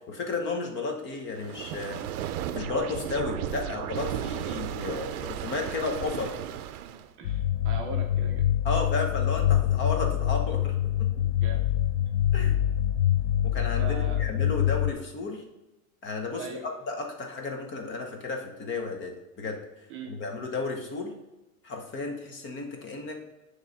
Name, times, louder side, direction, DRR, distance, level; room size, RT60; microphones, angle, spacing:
voice 1, 0.1-2.1 2.5-6.3 8.6-11.1 12.3-12.6 13.4-15.4 16.0-19.6 20.1-21.1 21.6-23.2, left 3 dB, 25° left, 2 dB, 0.9 m, -33 dB
sound 1, 1.3-7.1, right 11 dB, 80° right, 0.6 m, -34 dB
sound 2, 7.2-14.9, left 11 dB, 70° left, 0.5 m, -25 dB
voice 2, 7.2-8.4 11.4-11.6 13.8-14.2 16.4-16.7 19.9-20.1, right 4 dB, 30° right, 1 dB, 0.6 m, -40 dB
8.9 x 3.2 x 4.0 m, 1.0 s
supercardioid pair, 145°, 43 cm